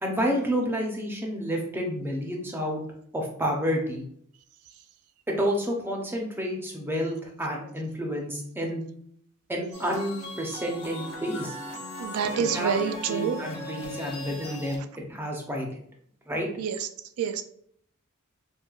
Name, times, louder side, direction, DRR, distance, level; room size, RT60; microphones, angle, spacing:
voice 1, 0.0-2.8 3.1-4.0 5.3-8.8 9.5-11.6 12.4-12.7 13.1-15.8 16.3-16.5, equal, 10° right, 0 dB, 0.6 m, -30 dB
sound 1, 9.7-14.8, left 1 dB, 75° left, 0.8 m, -38 dB
voice 2, 12.0-13.4 16.6-16.9 17.2-17.4, right 7 dB, 80° right, 8 dB, 0.4 m, -27 dB
4.5 x 2.2 x 2.3 m, 0.66 s
head